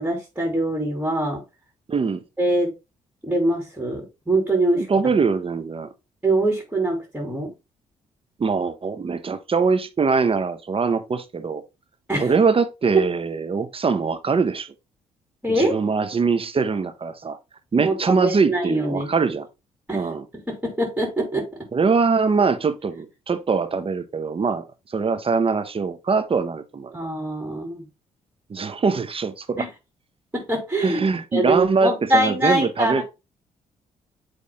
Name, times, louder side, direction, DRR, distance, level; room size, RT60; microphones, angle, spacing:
voice 1, 0.0-1.4 2.4-2.7 3.2-4.9 6.2-7.5 12.1-12.3 15.4-15.7 17.7-19.1 19.9-20.0 20.5-21.5 26.9-27.8 29.5-29.7 30.3-31.0 31.3-33.0, right 1 dB, 10° right, 3.1 m, -23 dB
voice 2, 1.9-2.2 4.7-5.9 8.4-11.6 12.2-14.7 15.5-17.4 17.7-19.5 19.9-20.3 21.7-24.6 24.9-27.0 28.5-29.7 30.8-33.0, right 5 dB, 35° right, 1.1 m, -22 dB
8.4 x 3.5 x 3.6 m
hypercardioid pair, 50°, 16 cm